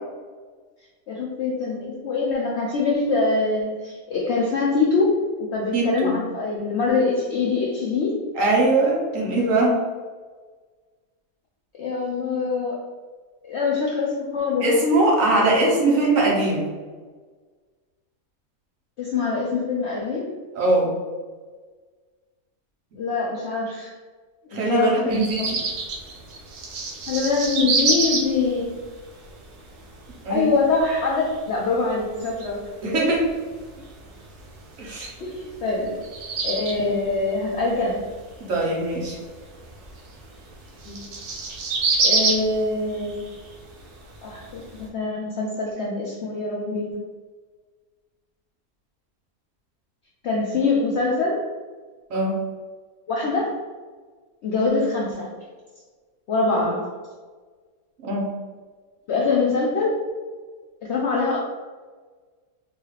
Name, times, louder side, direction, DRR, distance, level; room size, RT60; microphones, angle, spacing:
voice 1, 1.1-8.1 11.8-12.8 13.5-14.7 19.0-20.3 23.0-23.9 24.5-25.2 27.1-28.7 30.3-32.7 35.2-36.0 36.4-38.1 40.8-41.1 42.0-43.2 44.2-47.0 50.2-51.5 53.1-53.5 54.4-55.3 56.3-56.9 59.1-60.0 60.8-61.4, left 3 dB, 80° left, -3 dB, 0.6 m, -24 dB
voice 2, 5.7-6.2 8.3-9.8 14.6-16.7 20.5-20.9 24.5-25.4 30.2-30.5 32.8-33.3 34.8-35.1 38.5-39.2 52.1-52.4 58.0-58.3, right 2 dB, 60° right, -3 dB, 1.1 m, -21 dB
sound 1, 25.1-44.9, right 3 dB, 80° right, 1.3 m, -30 dB
4.0 x 2.3 x 3.2 m, 1.4 s
omnidirectional pair, 1.7 m